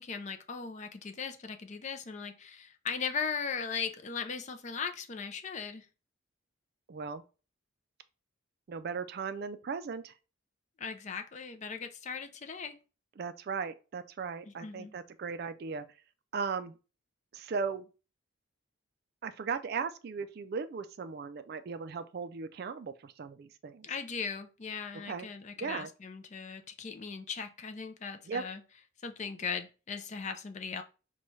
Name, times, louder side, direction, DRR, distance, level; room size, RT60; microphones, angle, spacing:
voice 1, 0.0-5.9 10.8-12.8 14.5-14.9 23.8-28.6 29.0-30.8, left 6 dB, 35° left, 0.4 m, -38 dB
voice 2, 6.9-7.2 8.7-10.1 13.2-15.8 16.3-16.7 17.3-17.9 19.2-23.9 25.0-25.3 25.6-25.9 28.3-28.4, right 5 dB, 50° right, 0.3 m, -37 dB
5.3 x 2.3 x 3.1 m
head